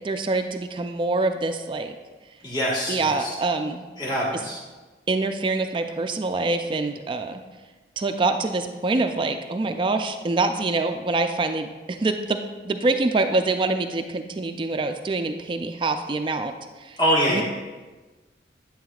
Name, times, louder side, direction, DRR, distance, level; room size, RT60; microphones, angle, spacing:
voice 1, 0.0-2.0 2.9-3.9 5.1-7.4 8.0-12.4 12.6-16.5 16.8-17.0 17.3-17.4, right 3 dB, 30° right, 7 dB, 0.3 m, -25 dB
voice 2, 2.4-3.3 4.0-4.6 17.0-17.4, equal, 25° left, -5 dB, 1.3 m, -24 dB
8.7 x 7.5 x 2.4 m, 1.3 s
head